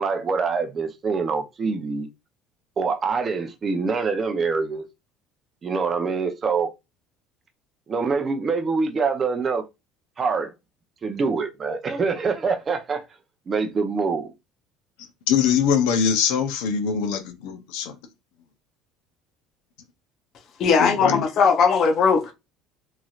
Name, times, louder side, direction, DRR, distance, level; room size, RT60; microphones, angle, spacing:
voice 1, 0.0-2.1 2.8-4.8 5.6-6.7 7.9-9.7 10.2-10.5 11.0-13.0 13.5-14.3, right 4 dB, 30° right, 0.5 m, -25 dB
voice 2, 15.3-18.0 20.8-21.2, left 7 dB, 85° left, 0.6 m, -22 dB
voice 3, 20.6-22.3, left 5 dB, 45° left, 0.7 m, -19 dB
3.1 x 2.7 x 2.4 m
cardioid pair, 130°, 0 cm